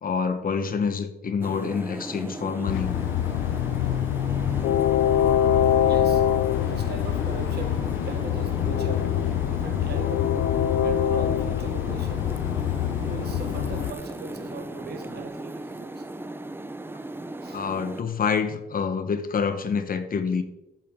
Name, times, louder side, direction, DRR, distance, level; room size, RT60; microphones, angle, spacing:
voice 1, 0.0-2.9 17.5-20.4, left 6 dB, 45° left, 1.2 m, -27 dB
sound 1, 1.4-18.0, right 2 dB, 10° right, 0.6 m, -37 dB
Train, 2.7-13.9, left 11 dB, 80° left, 0.6 m, -24 dB
voice 2, 5.8-6.3 6.6-9.1 9.5-10.3 10.8-12.3 13.0-16.1 17.4-17.6, right 5 dB, 55° right, 1.4 m, -40 dB
sound 2, 7.2-15.3, left 1 dB, 25° left, 2.9 m, -42 dB
13.5 x 7.1 x 3.7 m
cardioid pair, 90°, 20 cm